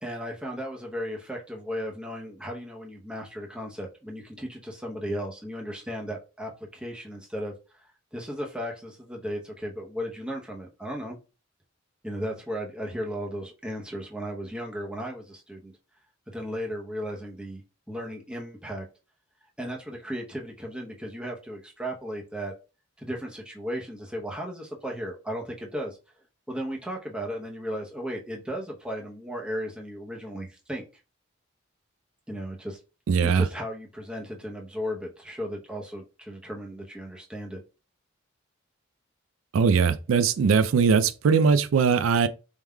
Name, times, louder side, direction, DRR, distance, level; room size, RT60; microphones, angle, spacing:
voice 1, 0.0-7.8 8.1-11.2 12.0-15.7 16.3-17.6 17.9-18.9 19.6-22.5 23.0-26.0 26.5-30.9 32.3-32.8 33.2-37.6, equal, 5° right, 0.7 m, -35 dB
voice 2, 33.1-33.5 39.5-42.3, right 5 dB, 80° right, 0.4 m, -20 dB
4.7 x 3.6 x 2.2 m
head